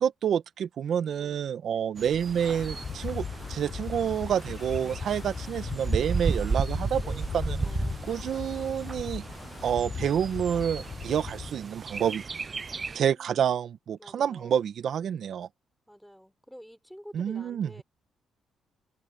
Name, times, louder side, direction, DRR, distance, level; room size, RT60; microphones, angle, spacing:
voice 1, 0.0-7.6 8.1-9.2 9.6-12.2 12.9-15.5 17.1-17.8, right 8 dB, 65° right, 1.6 m, -28 dB
voice 2, 1.0-1.5 7.0-7.3 7.6-8.0 12.8-13.6 14.0-14.7 15.9-17.8, equal, ahead, 5.8 m, -49 dB
Bird, 2.0-13.0, right 5 dB, 35° right, 0.4 m, -35 dB
Wind, 2.4-11.5, left 6 dB, 45° left, 1.0 m, -38 dB
cardioid pair, 90°, 0 cm